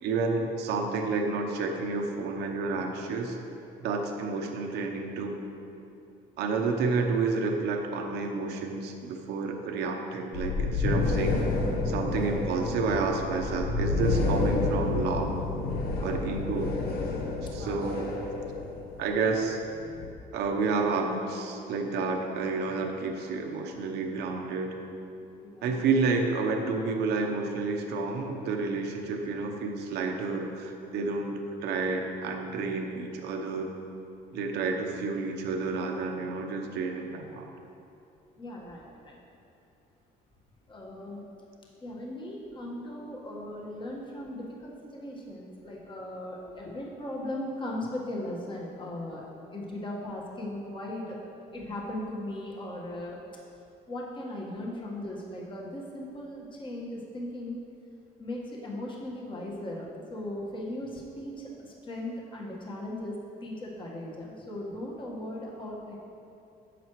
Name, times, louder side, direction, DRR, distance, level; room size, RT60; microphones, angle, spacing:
voice 1, 0.0-3.4 3.8-5.4 6.4-11.4 11.8-15.4 16.0-16.7 17.5-18.1 19.0-19.6 20.3-24.7 25.6-33.7 34.3-37.5, right 4 dB, 80° right, 3 dB, 0.9 m, -30 dB
sound 1, 10.3-20.1, left 3 dB, 65° left, 1.0 m, -29 dB
voice 2, 25.4-25.9 38.4-39.2 40.7-41.2 41.8-49.2 49.5-51.2 51.5-53.2 53.9-57.6 58.2-63.1 63.4-66.0, left 1 dB, 30° left, -3 dB, 1.5 m, -38 dB
11.0 x 7.7 x 3.1 m, 2.7 s
cardioid pair, 110°, 17 cm